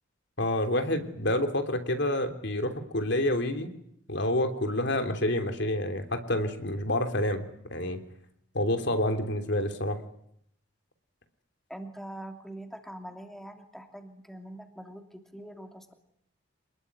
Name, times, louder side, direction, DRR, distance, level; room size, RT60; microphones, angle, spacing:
voice 1, 0.4-3.7 4.1-7.5 7.7-8.0 8.5-10.0, left 1 dB, 60° left, 7 dB, 3.2 m, -28 dB
voice 2, 11.7-15.9, right 1 dB, ahead, 5 dB, 2.9 m, -43 dB
27.5 x 20.5 x 9.6 m, 0.71 s
head